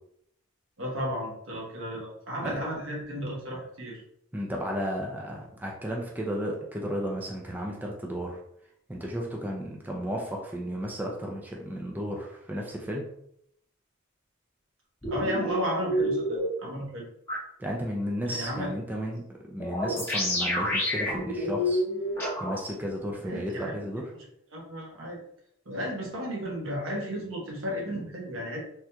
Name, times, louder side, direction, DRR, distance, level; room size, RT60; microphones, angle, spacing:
voice 1, 0.8-4.0 15.1-17.0 18.3-18.7 23.2-23.7 24.1-24.2 24.5-25.2 25.6-28.6, equal, 75° right, -2 dB, 1.1 m, -34 dB
voice 2, 4.3-8.4 8.9-13.0 17.6-21.8 22.4-24.0, equal, 10° right, -1 dB, 0.4 m, -33 dB
sound 1, 15.0-16.5 17.3-17.4 19.6-22.6, equal, 15° left, 1.0 m, -28 dB
3.5 x 2.9 x 2.2 m, 0.73 s
head